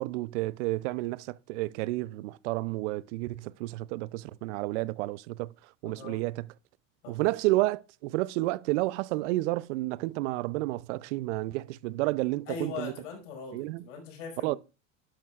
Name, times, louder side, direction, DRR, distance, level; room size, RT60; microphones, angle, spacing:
voice 1, 0.0-5.5 5.8-6.5 7.1-12.9 13.5-13.8 14.4-14.6, right 19 dB, 65° right, 0.6 m, -31 dB
voice 2, 5.8-6.2 7.0-7.3 12.5-14.6, left 5 dB, 75° left, 5.3 m, -40 dB
12.0 x 11.5 x 2.4 m
hypercardioid pair, 100°, 38 cm